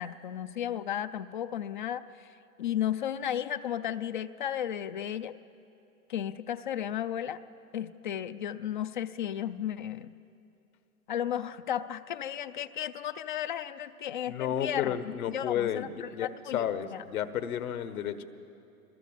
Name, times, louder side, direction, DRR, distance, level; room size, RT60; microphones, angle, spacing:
voice 1, 0.0-5.4 6.1-7.4 7.7-10.1 11.1-17.0, left 10 dB, 35° left, 14 dB, 0.4 m, -34 dB
voice 2, 14.3-18.3, left 9 dB, 65° left, 11 dB, 1.5 m, -32 dB
23.0 x 20.5 x 7.5 m, 2.9 s
hypercardioid pair, 140°, 45 cm